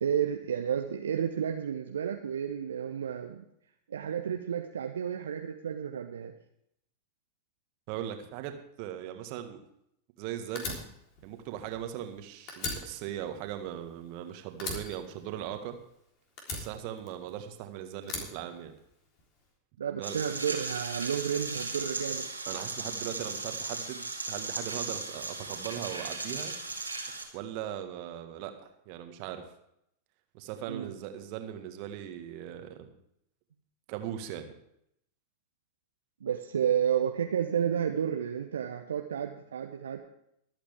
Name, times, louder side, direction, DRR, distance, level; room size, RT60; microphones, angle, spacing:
voice 1, 0.0-3.4 3.9-6.3 19.8-22.3 30.7-30.9 36.2-40.0, right 8 dB, 65° right, 4 dB, 0.9 m, -31 dB
voice 2, 7.9-9.6 10.2-10.8 11.2-15.7 16.5-18.7 20.0-20.2 22.5-26.6 27.3-29.5 30.3-32.9 33.9-34.5, right 11 dB, 45° right, 7 dB, 1.8 m, -39 dB
Fire, 10.6-12.2 12.5-14.2 14.6-15.9 16.4-17.5 18.0-19.2, left 3 dB, 40° left, 3.6 m, -39 dB
sound 1, 20.0-27.2, right 3 dB, 85° right, 2.3 m, -37 dB
23.5 x 8.7 x 3.6 m, 0.75 s
figure-of-eight pair, 90°, 0 cm